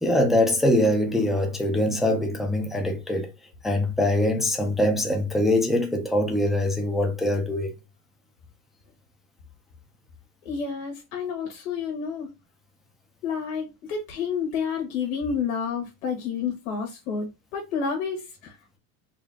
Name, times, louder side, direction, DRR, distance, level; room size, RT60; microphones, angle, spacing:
voice 1, 0.0-3.3 3.6-7.7, left 1 dB, ahead, 0.4 m, -23 dB
voice 2, 10.4-12.3 13.2-18.8, left 6 dB, 90° left, 1.6 m, -30 dB
4.0 x 2.7 x 3.4 m
supercardioid pair, 150°, 40 cm